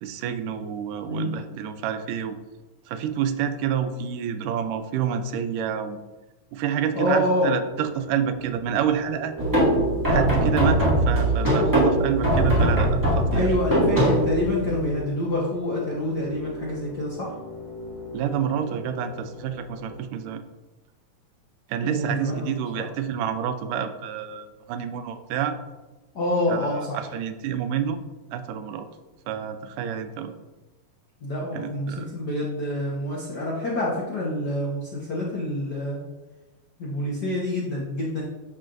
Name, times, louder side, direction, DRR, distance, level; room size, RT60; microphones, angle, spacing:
voice 1, 0.0-2.4 2.9-6.0 6.5-9.3 10.1-13.5 18.1-20.4 21.7-25.6 26.5-28.0 28.3-28.9 29.3-30.4 31.5-32.1, right 8 dB, 85° right, 8 dB, 2.2 m, -28 dB
voice 2, 6.9-7.5 13.3-17.3 21.8-22.9 26.1-27.0 31.2-36.0 36.8-38.2, left 1 dB, 70° left, -5 dB, 0.9 m, -27 dB
sound 1, 7.3-20.0, equal, 35° right, 0.8 m, -40 dB
sound 2, 9.4-14.9, right 1 dB, 10° right, 1.3 m, -21 dB
12.0 x 4.7 x 2.6 m, 1.1 s
omnidirectional pair, 3.6 m